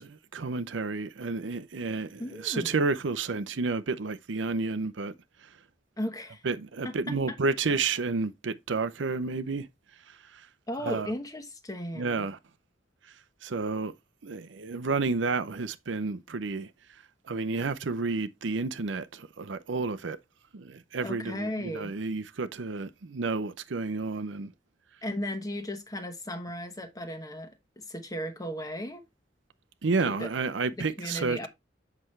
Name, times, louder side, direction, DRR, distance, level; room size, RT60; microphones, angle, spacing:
voice 1, 0.0-5.1 6.4-9.7 10.8-11.1 11.9-12.4 13.4-13.9 14.2-16.7 17.3-20.2 20.5-24.5 29.8-31.4, right 4 dB, 80° right, 0.6 m, -30 dB
voice 2, 2.2-2.8 6.0-6.4 6.8-6.9 7.3-7.4 10.7-12.3 21.0-21.9 25.0-29.0 30.1-30.3 30.8-31.5, left 1 dB, 20° left, 1.2 m, -36 dB
7.8 x 5.9 x 3.2 m
head